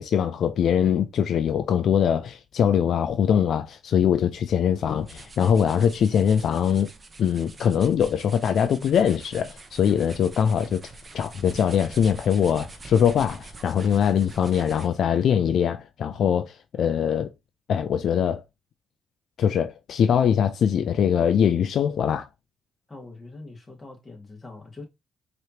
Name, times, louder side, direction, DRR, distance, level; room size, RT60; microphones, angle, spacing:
voice 1, 0.0-6.9 7.2-10.8 11.1-17.3 17.7-18.4 19.4-22.3, left 8 dB, 65° left, 0.4 m, -22 dB
sound 1, 4.7-15.1, right 3 dB, 30° right, 0.8 m, -44 dB
voice 2, 22.9-24.8, left 2 dB, 20° left, 1.8 m, -43 dB
4.8 x 3.0 x 2.8 m
cardioid pair, 90°, 0 cm